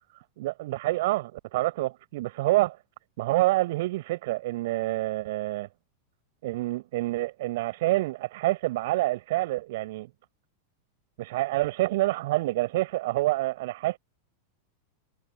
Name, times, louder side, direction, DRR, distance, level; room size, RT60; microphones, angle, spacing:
voice 1, 0.4-2.8 3.2-5.7 6.4-10.1 11.2-14.0, right 18 dB, 50° right, 6.3 m, -27 dB
figure-of-eight pair, 90°, 0 cm